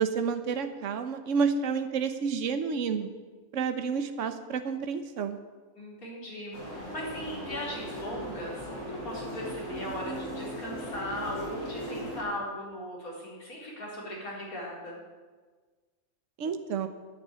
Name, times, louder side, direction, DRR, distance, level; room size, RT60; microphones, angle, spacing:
voice 1, 0.0-3.1 3.5-5.4 16.4-16.9, right 6 dB, 60° right, 8 dB, 1.3 m, -29 dB
voice 2, 5.7-15.0, left 1 dB, 75° left, -3 dB, 4.5 m, -38 dB
sound 1, 6.5-12.2, equal, 55° left, 5.4 m, -38 dB
10.5 x 9.9 x 9.5 m, 1.4 s
omnidirectional pair, 1.5 m